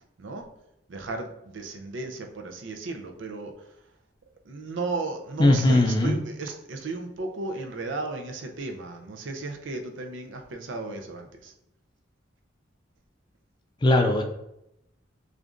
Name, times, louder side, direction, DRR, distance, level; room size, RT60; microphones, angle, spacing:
voice 1, 0.2-0.5 0.9-3.8 4.4-11.5, right 3 dB, 80° right, 4 dB, 0.6 m, -35 dB
voice 2, 5.4-6.2 13.8-14.2, left 1 dB, 25° left, 4 dB, 0.4 m, -19 dB
6.4 x 2.5 x 2.5 m, 0.83 s
head